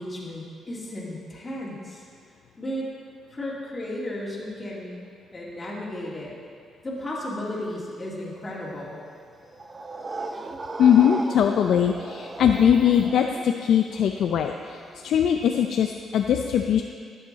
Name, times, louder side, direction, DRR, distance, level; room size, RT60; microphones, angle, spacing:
voice 1, 0.0-2.0 2.6-2.9 3.3-6.3 6.8-9.0, left 1 dB, 25° left, -5 dB, 2.5 m, -34 dB
sound 1, 8.8-15.7, right 2 dB, 30° right, 0.6 m, -36 dB
voice 2, 10.8-16.8, left 8 dB, 70° left, 4 dB, 0.4 m, -21 dB
12.0 x 7.9 x 4.1 m, 2.2 s
cardioid pair, 90°, 0 cm